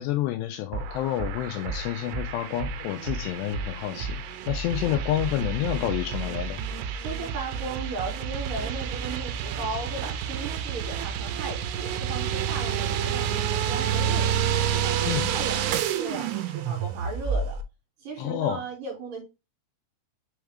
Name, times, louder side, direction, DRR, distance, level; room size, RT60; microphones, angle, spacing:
voice 1, 0.0-4.2 4.5-6.6 15.1-15.3 18.2-18.6, left 13 dB, 90° left, 2.4 m, -29 dB
sound 1, 0.7-17.6, right 8 dB, 85° right, 3.2 m, -29 dB
voice 2, 7.0-14.3 14.7-17.6 18.0-19.2, right 3 dB, 50° right, 3.9 m, -36 dB
7.2 x 3.5 x 4.8 m
omnidirectional pair, 5.5 m